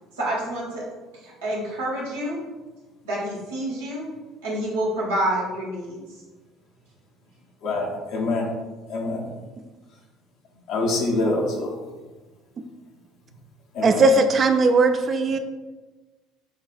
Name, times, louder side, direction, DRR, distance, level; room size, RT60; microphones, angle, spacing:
voice 1, 0.2-0.8 1.2-2.4 3.0-4.1 4.4-6.0, right 1 dB, 85° right, -5 dB, 1.2 m, -28 dB
voice 2, 7.6-8.5 8.9-9.3 10.7-11.8 13.7-14.1, left 2 dB, 65° left, -1 dB, 0.9 m, -25 dB
voice 3, 13.8-15.4, right 3 dB, 40° right, 8 dB, 0.4 m, -18 dB
6.5 x 2.4 x 2.4 m, 1.2 s
hypercardioid pair, 60°, 0 cm